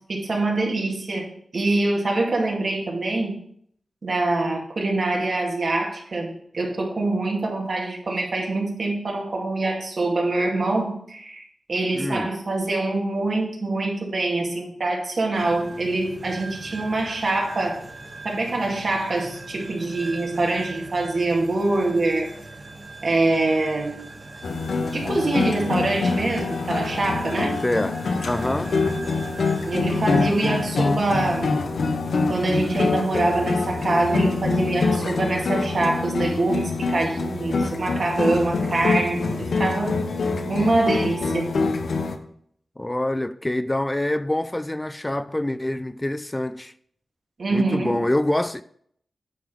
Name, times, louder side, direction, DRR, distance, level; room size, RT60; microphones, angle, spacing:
voice 1, 0.0-3.4 4.0-11.4 11.7-17.8 18.2-22.3 23.0-24.1 24.9-27.6 29.7-31.5 32.3-40.0 40.5-41.5 47.4-48.0, right 2 dB, 65° right, 2.2 m, -24 dB
voice 2, 11.9-12.3 27.6-28.7 42.8-46.7 47.5-48.6, left 1 dB, 20° left, 0.3 m, -25 dB
sound 1, 15.3-35.3, right 2 dB, 45° right, 1.6 m, -42 dB
sound 2, 24.4-42.2, left 3 dB, 80° left, 0.8 m, -25 dB
9.1 x 3.6 x 6.2 m
cardioid pair, 55°, 0 cm